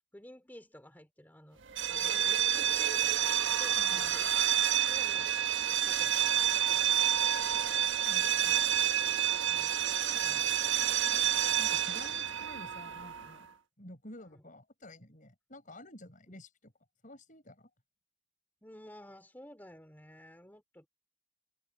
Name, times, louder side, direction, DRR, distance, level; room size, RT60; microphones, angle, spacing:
voice 1, 0.1-1.6 1.9-4.4 4.9-7.1 9.5-9.9 10.2-11.1 14.3-14.4 18.6-20.9, left 1 dB, 10° left, 2.6 m, -53 dB
sound 1, 1.7-13.4, right 10 dB, 85° right, 1.4 m, -29 dB
sound 2, 2.2-8.6, right 9 dB, 65° right, 3.9 m, -54 dB
voice 2, 3.8-4.2 8.1-8.8 11.6-13.5 13.8-16.7 17.0-17.7, left 1 dB, 45° left, 6.7 m, -51 dB
head